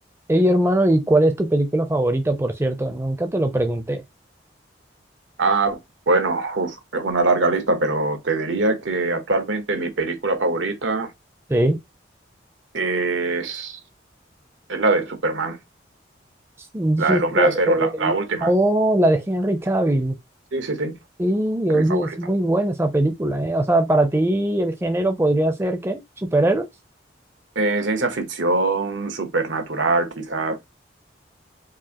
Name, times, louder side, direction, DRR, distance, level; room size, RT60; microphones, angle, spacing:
voice 1, 0.3-4.0 11.5-11.8 16.7-18.2 18.4-20.2 21.2-26.7, right 1 dB, 15° right, 0.5 m, -21 dB
voice 2, 5.4-5.8 6.1-11.1 12.7-13.8 14.7-15.6 17.0-18.5 20.5-21.0 21.7-22.2 27.5-30.6, right 3 dB, 90° right, 1.0 m, -23 dB
4.7 x 2.5 x 2.9 m
head